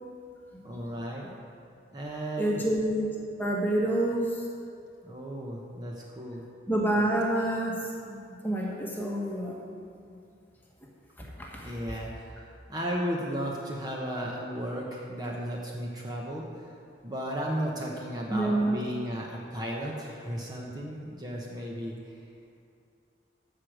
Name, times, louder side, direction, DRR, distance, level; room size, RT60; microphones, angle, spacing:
voice 1, 0.6-1.2 1.9-2.6 5.0-6.4 11.6-16.8 17.0-22.1, equal, 20° right, -2 dB, 0.9 m, -35 dB
voice 2, 2.4-4.4 6.7-9.9 11.2-11.7 18.3-18.8, right 1 dB, 10° left, -2 dB, 1.2 m, -28 dB
14.0 x 4.9 x 6.2 m, 2.4 s
head